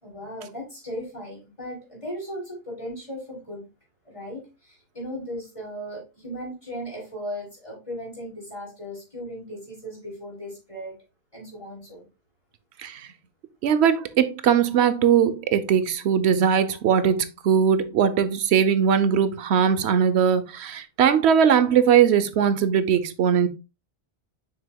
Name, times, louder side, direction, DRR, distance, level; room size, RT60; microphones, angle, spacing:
voice 1, 0.0-3.6 4.0-11.0 11.3-12.0, equal, 30° left, 4.0 m, -37 dB
voice 2, 13.6-23.5, right 8 dB, 85° right, 1.0 m, -20 dB
6.9 x 6.3 x 2.2 m
omnidirectional pair, 1.1 m